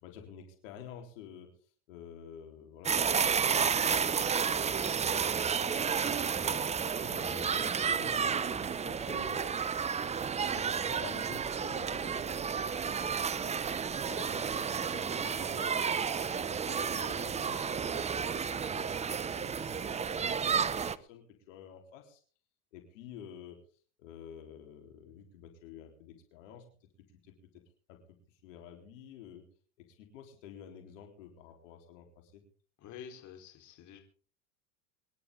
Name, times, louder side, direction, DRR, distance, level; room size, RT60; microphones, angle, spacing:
voice 1, 0.0-6.6 7.0-9.6 10.1-13.6 14.1-15.8 16.3-22.2 22.7-23.6 24.0-26.7 27.2-27.6 27.9-29.4 29.8-32.4, left 8 dB, 75° left, 3 dB, 4.0 m, -51 dB
sound 1, 2.9-21.0, right 6 dB, 15° right, 0.7 m, -31 dB
voice 2, 32.8-34.0, left 8 dB, 50° left, 4 dB, 4.1 m, -48 dB
25.5 x 11.0 x 3.8 m, 0.43 s
hypercardioid pair, 100°, 38 cm